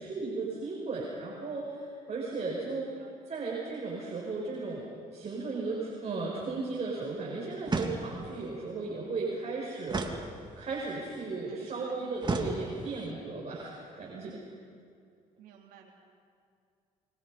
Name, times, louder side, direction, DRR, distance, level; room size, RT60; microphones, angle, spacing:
voice 1, 0.0-2.9 3.3-10.1 10.6-14.4, right 3 dB, 45° right, -3 dB, 7.0 m, -35 dB
sound 1, 7.7-8.4 9.9-10.8 12.2-13.1, right 3 dB, 30° right, 2.9 m, -34 dB
voice 2, 11.5-12.2 14.1-14.5 15.4-15.9, right 9 dB, 85° right, 0 dB, 4.2 m, -54 dB
29.0 x 24.0 x 5.6 m, 2.3 s
supercardioid pair, 75°, 15 cm